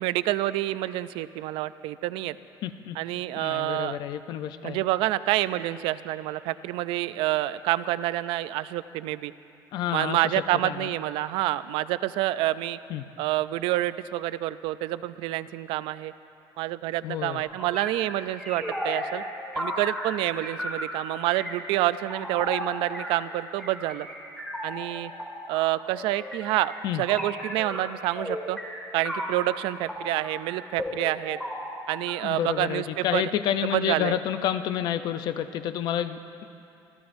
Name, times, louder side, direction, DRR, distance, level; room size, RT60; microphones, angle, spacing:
voice 1, 0.0-2.4 3.0-4.0 4.6-9.3 9.9-12.8 13.2-16.1 16.6-19.2 19.5-24.1 24.6-25.1 25.5-26.7 27.0-28.6 28.9-31.4 31.9-33.3 33.7-34.2, right 15 dB, 85° right, 15 dB, 0.4 m, -28 dB
voice 2, 2.6-3.0 3.4-4.8 9.7-10.3 10.6-10.9 12.9-13.0 17.0-17.4 26.8-27.0 32.2-36.4, left 10 dB, 55° left, 11 dB, 0.5 m, -29 dB
sound 1, 17.4-29.5 29.9-32.3, equal, 5° left, 1.8 m, -35 dB
25.0 x 14.5 x 2.6 m, 2.7 s
cardioid pair, 170°, 9 cm